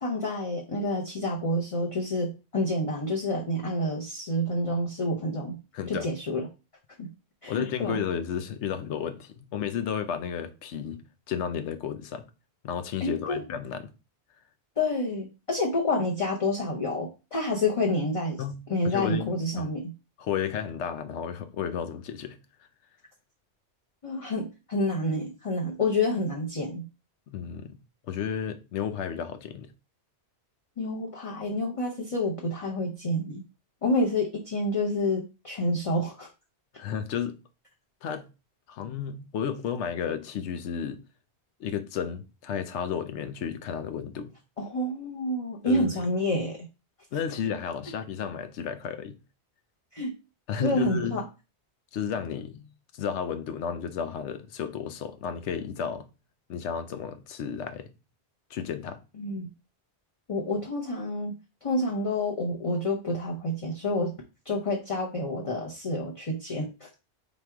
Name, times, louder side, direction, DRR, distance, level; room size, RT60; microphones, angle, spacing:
voice 1, 0.0-5.6 5.9-6.5 7.0-7.1 7.4-8.0 13.0-13.4 14.8-18.4 18.7-19.9 24.0-26.9 30.8-33.4 33.8-36.3 44.6-46.7 49.9-50.1 50.6-51.2 59.2-59.5 60.3-61.3 61.6-64.2 64.4-66.9, left 1 dB, 35° left, 0.7 m, -28 dB
voice 2, 5.7-6.1 7.5-11.0 11.3-12.3 12.6-13.9 18.4-18.6 18.8-19.7 20.2-22.4 27.3-27.8 28.1-29.7 36.8-37.4 38.0-38.3 38.7-41.0 41.6-44.3 45.7-45.9 47.1-49.2 50.5-51.2 51.9-52.7 52.9-56.1 56.5-57.9 58.5-59.0, left 8 dB, 85° left, 0.9 m, -32 dB
3.6 x 3.0 x 4.6 m
omnidirectional pair, 1.2 m